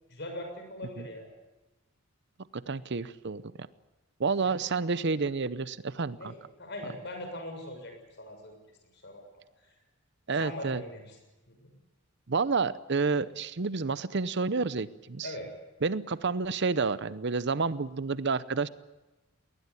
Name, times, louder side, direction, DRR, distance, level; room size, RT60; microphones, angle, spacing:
voice 1, 0.1-1.3 4.4-4.6 6.2-8.5 8.9-9.2 9.6-9.7 10.3-11.2 11.5-11.7 15.2-15.5, left 1 dB, 50° left, 4 dB, 6.6 m, -41 dB
voice 2, 2.5-3.7 4.2-6.3 10.3-10.8 12.3-15.3 15.8-18.7, right 4 dB, 55° right, 17 dB, 0.7 m, -29 dB
21.5 x 19.0 x 9.8 m, 1.1 s
head